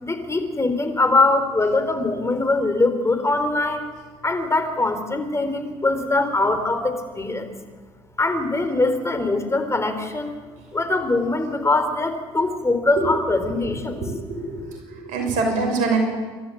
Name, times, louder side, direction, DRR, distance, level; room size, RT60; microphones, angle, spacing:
voice 1, 0.0-3.8 4.2-7.5 8.2-10.3 10.7-14.0, left 2 dB, 20° left, 7 dB, 4.1 m, -22 dB
voice 2, 14.0-16.0, right 3 dB, 70° right, 3 dB, 6.1 m, -25 dB
27.5 x 12.5 x 8.8 m, 1.4 s
hypercardioid pair, 55°, 13 cm